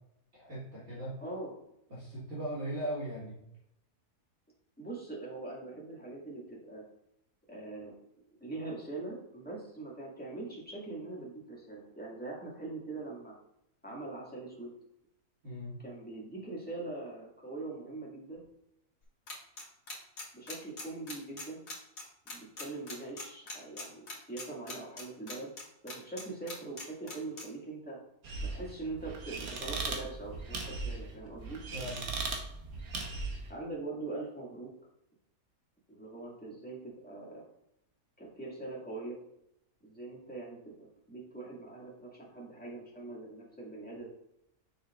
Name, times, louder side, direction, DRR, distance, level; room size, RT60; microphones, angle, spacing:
voice 1, 0.3-1.2 1.9-3.5 15.4-15.8 31.7-32.1, right 1 dB, 45° right, -8 dB, 1.9 m, -39 dB
voice 2, 1.2-1.5 4.8-6.8 7.5-7.9 8.4-13.3 13.8-14.7 15.8-18.4 20.3-21.6 22.3-25.5 25.8-28.0 28.5-31.6 33.5-34.7 35.9-37.5 38.2-39.2 39.8-44.1, right 2 dB, 5° left, -5 dB, 1.9 m, -42 dB
sound 1, 19.3-26.2 26.5-27.4, left 3 dB, 65° left, 2.0 m, -41 dB
sound 2, 28.2-33.5, right 3 dB, 70° right, 1.5 m, -38 dB
6.6 x 6.2 x 2.4 m, 0.80 s
omnidirectional pair, 1.6 m